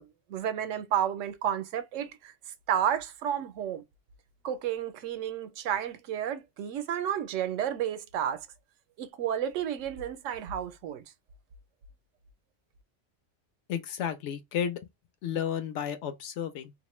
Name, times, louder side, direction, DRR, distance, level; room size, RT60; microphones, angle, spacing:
voice 1, 0.0-2.3 2.7-3.8 4.4-8.5 9.0-11.0, right 9 dB, 85° right, 0.9 m, -31 dB
voice 2, 13.7-14.8 15.2-16.7, left 9 dB, 75° left, 0.9 m, -32 dB
2.5 x 2.1 x 3.0 m
omnidirectional pair, 1.3 m